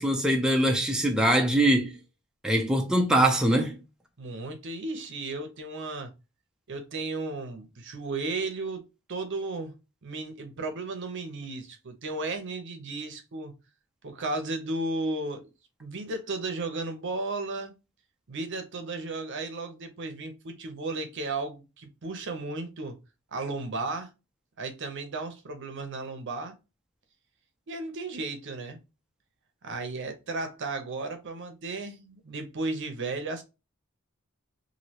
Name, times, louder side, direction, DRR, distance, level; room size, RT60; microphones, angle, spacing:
voice 1, 0.0-1.9 2.4-3.8, right 1 dB, 5° right, 0.5 m, -23 dB
voice 2, 4.2-6.1 6.7-9.7 10.0-13.5 14.0-15.5 15.8-17.8 18.3-23.0 23.3-24.1 24.6-26.5 27.7-28.8 29.6-33.4, right 3 dB, 60° right, 0.7 m, -34 dB
3.1 x 2.6 x 2.7 m
head